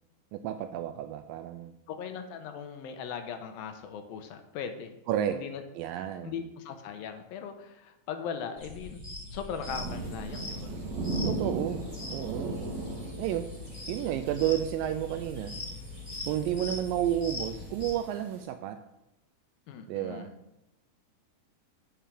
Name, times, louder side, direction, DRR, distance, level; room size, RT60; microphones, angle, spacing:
voice 1, 0.3-1.7 5.1-5.4 5.8-6.3 11.3-11.8 12.1-12.6 13.2-13.5 13.9-15.5 16.3-18.8 19.9-20.3, right 11 dB, 85° right, 8 dB, 2.0 m, -31 dB
voice 2, 1.9-5.0 5.3-5.6 6.2-9.0 9.3-10.8 19.7-20.4, left 7 dB, 80° left, 7 dB, 2.4 m, -39 dB
sound 1, 8.6-17.9, left 3 dB, 35° left, 0.6 m, -41 dB
sound 2, 9.7-18.4, right 3 dB, 55° right, 2.5 m, -38 dB
9.0 x 4.9 x 7.4 m, 0.88 s
omnidirectional pair, 4.4 m